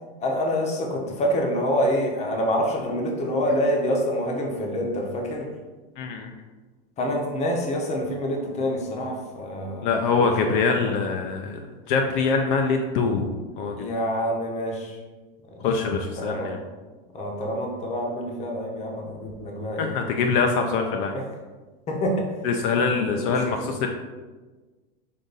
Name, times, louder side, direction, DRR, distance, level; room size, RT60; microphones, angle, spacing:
voice 1, 0.2-5.5 7.0-9.9 10.1-10.6 13.8-15.0 15.5-15.6 16.2-16.5 17.1-20.0 21.1-21.2 21.9-22.3 23.3-23.4 23.6-23.7, equal, 25° left, 1 dB, 0.8 m, -26 dB
voice 2, 6.0-6.3 9.8-11.6 11.9-13.3 13.6-13.8 15.6-16.6 19.8-21.1 22.4-23.9, left 4 dB, 60° left, 3 dB, 0.5 m, -24 dB
5.4 x 2.5 x 3.9 m, 1.3 s
supercardioid pair, 145°, 29 cm